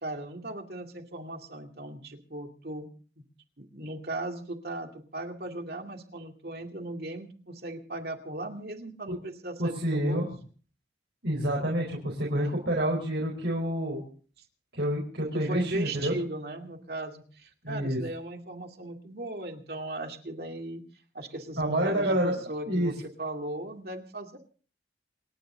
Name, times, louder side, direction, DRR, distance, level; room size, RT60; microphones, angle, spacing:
voice 1, 0.0-2.9 3.6-10.3 15.3-20.8 21.1-24.4, right 2 dB, 60° right, 3 dB, 2.4 m, -37 dB
voice 2, 9.6-10.3 11.2-14.0 14.7-16.1 17.6-18.0 21.6-22.3 22.7-22.9, right 1 dB, 85° right, -2 dB, 4.6 m, -28 dB
27.5 x 10.0 x 3.9 m, 0.42 s
head